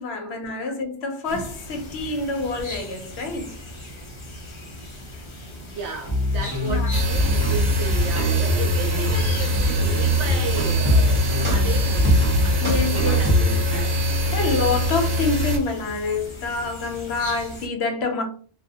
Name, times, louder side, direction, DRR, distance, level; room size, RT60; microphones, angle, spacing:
voice 1, 0.0-3.5 6.6-7.2 12.6-13.6 14.3-18.2, left 3 dB, 65° left, 0.7 m, -27 dB
sound 1, 1.2-17.7, left 1 dB, 40° left, 0.4 m, -39 dB
voice 2, 5.5-14.0 14.4-14.5, right 5 dB, 70° right, 1.0 m, -34 dB
sound 2, 6.1-13.8, left 1 dB, 15° right, 0.7 m, -22 dB
sound 3, 6.9-15.6, equal, 50° right, 0.7 m, -23 dB
2.2 x 2.0 x 2.7 m
omnidirectional pair, 1.3 m